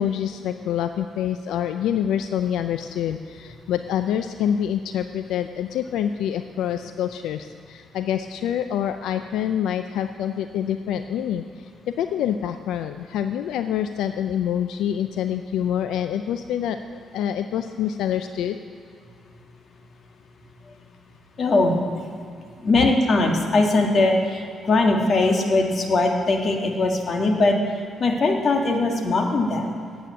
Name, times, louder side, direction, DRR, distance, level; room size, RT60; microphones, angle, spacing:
voice 1, 0.0-18.6 22.7-22.9, left 9 dB, 85° left, 9 dB, 0.4 m, -26 dB
voice 2, 21.4-21.8 22.6-27.6 28.0-29.7, left 2 dB, 50° left, 2 dB, 1.7 m, -20 dB
9.3 x 8.0 x 8.6 m, 2.3 s
cardioid pair, 90°, 0 cm